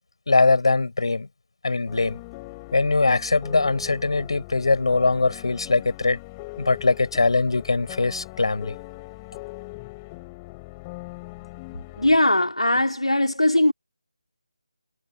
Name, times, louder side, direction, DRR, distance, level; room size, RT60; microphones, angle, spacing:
voice 1, 0.3-1.3 1.6-2.2 2.7-6.2 6.6-8.7, left 3 dB, 60° left, 6.5 m, -21 dB
sound 1, 1.9-12.2, left 25 dB, 15° left, 5.1 m, -41 dB
voice 2, 12.0-13.7, left 1 dB, 80° left, 3.9 m, -20 dB
figure-of-eight pair, 155°, 3 cm